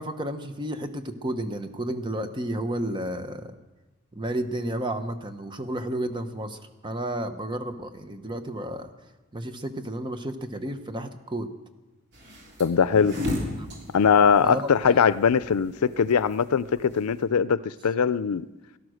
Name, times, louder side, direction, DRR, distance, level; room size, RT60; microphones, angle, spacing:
voice 1, 0.0-3.6 4.1-8.9 9.3-11.5 13.6-13.7 14.4-14.7, right 1 dB, 20° right, 8 dB, 1.0 m, -32 dB
sound 1, 12.1-17.2, left 1 dB, 50° right, 3.5 m, -34 dB
voice 2, 12.6-13.2 13.9-18.5, left 6 dB, 90° left, 17 dB, 0.5 m, -21 dB
17.5 x 12.5 x 6.5 m, 1.2 s
head